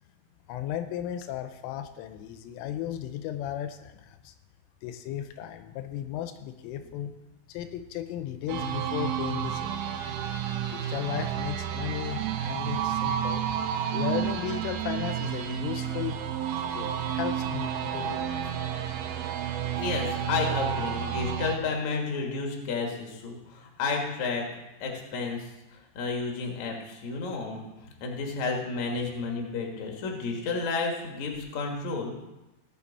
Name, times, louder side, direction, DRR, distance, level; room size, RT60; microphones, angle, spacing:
voice 1, 0.5-4.3 4.8-7.2 7.5-10.2 10.7-13.4 13.9-16.2 16.7-18.7, left 11 dB, 90° left, 9 dB, 3.2 m, -35 dB
sound 1, 8.5-21.6, right 9 dB, 80° right, 3.4 m, -31 dB
voice 2, 19.8-24.4 24.8-25.4 25.7-27.6 28.0-32.1, left 4 dB, 55° left, 1 dB, 2.2 m, -31 dB
18.5 x 7.0 x 4.2 m, 0.98 s
omnidirectional pair, 5.8 m